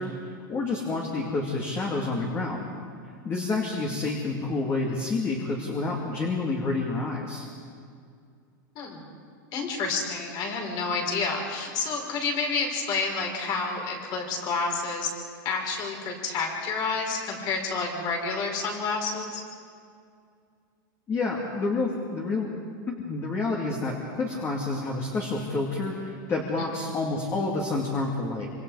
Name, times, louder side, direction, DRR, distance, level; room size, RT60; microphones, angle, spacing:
voice 1, 0.0-2.7 3.2-7.4 21.1-22.5 23.0-28.5, left 3 dB, 20° left, -1 dB, 2.5 m, -29 dB
voice 2, 9.5-15.1 15.5-19.4, left 4 dB, 40° left, 1 dB, 5.2 m, -29 dB
26.0 x 25.5 x 4.9 m, 2.3 s
supercardioid pair, 145°, 11 cm